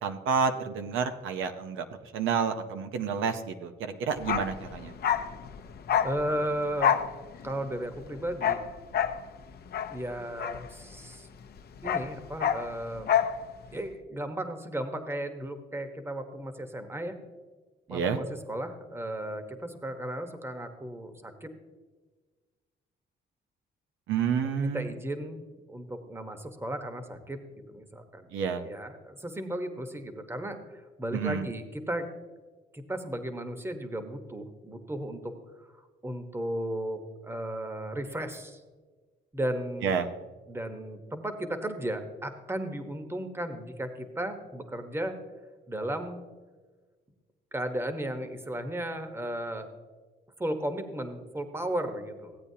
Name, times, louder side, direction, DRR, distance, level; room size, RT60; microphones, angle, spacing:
voice 1, 0.0-1.9 2.1-4.9 17.9-18.2 24.1-24.9 28.3-28.6 31.1-31.5 39.8-40.1, right 6 dB, 85° right, 7 dB, 0.8 m, -29 dB
Bark, 4.2-11.2 11.5-13.4 13.6-13.8, left 8 dB, 50° left, 0.7 m, -29 dB
voice 2, 6.0-6.9 7.4-8.6 9.9-11.3 11.8-13.1 13.7-17.1 17.9-21.5 24.5-25.4 25.7-28.3 28.6-32.1 32.7-35.3 36.0-38.6 39.3-39.9 40.5-45.2 45.7-46.2 47.5-49.7 50.4-52.4, right 1 dB, 10° right, 7 dB, 1.1 m, -35 dB
15.5 x 8.5 x 2.8 m, 1.4 s
cardioid pair, 90°, 20 cm